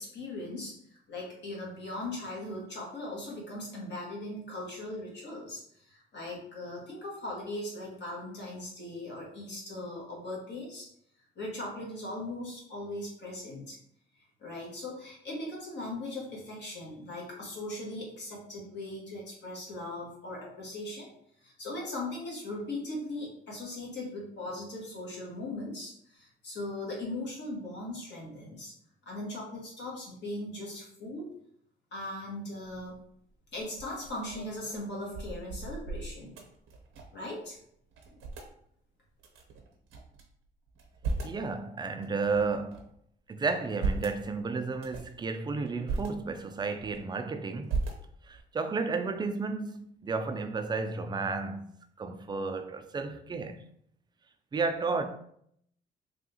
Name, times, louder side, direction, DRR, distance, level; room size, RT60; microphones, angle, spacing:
voice 1, 0.0-10.9 11.4-13.8 14.4-21.1 21.4-28.7 29.0-31.3 31.9-33.0 33.5-36.3 37.1-37.6, left 1 dB, 60° left, 1.4 m, -39 dB
sound 1, 32.6-33.0 33.5-37.3 37.6-37.7 37.9-38.5 39.2-40.2 40.7-41.4 42.0-43.0 43.5-44.2 44.7-45.2 45.7-46.1 46.6-47.2 47.7-48.4, right 3 dB, 85° right, 0.7 m, -37 dB
voice 2, 41.2-42.9 43.3-47.8 48.2-51.7 52.0-53.6 54.5-55.1, right 4 dB, 20° right, 0.3 m, -32 dB
3.5 x 2.4 x 2.7 m
cardioid pair, 90°, 20 cm